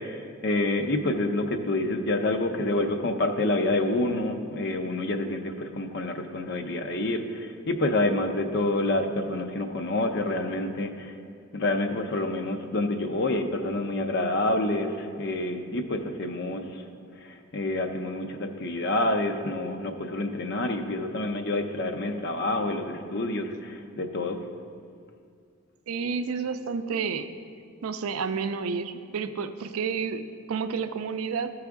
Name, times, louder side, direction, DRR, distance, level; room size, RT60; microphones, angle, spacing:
voice 1, 0.0-11.2 11.5-16.8 17.2-24.4, left 2 dB, 50° left, 6 dB, 0.6 m, -28 dB
voice 2, 25.9-27.3 27.8-30.2 30.5-31.5, right 5 dB, 85° right, 10 dB, 0.4 m, -30 dB
13.5 x 4.8 x 3.5 m, 2.3 s
head